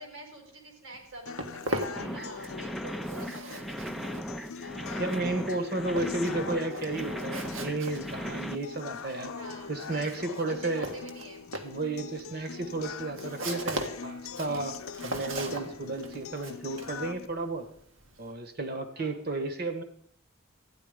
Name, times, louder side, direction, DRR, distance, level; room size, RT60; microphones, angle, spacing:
voice 1, 0.0-3.9 9.3-11.4 18.9-19.2, right 2 dB, 85° right, 1 dB, 4.7 m, -46 dB
Walk footsteps, 0.9-2.7 2.9-18.3, right 1 dB, 70° right, 1.6 m, -39 dB
sound 1, 1.3-17.3, left 6 dB, 85° left, 0.6 m, -42 dB
sound 2, 2.0-8.5, equal, ahead, 0.5 m, -37 dB
voice 2, 5.0-9.3 9.7-10.9 11.6-17.7 18.2-19.8, right 2 dB, 45° right, 7 dB, 1.5 m, -33 dB
14.0 x 10.0 x 5.1 m, 0.65 s
head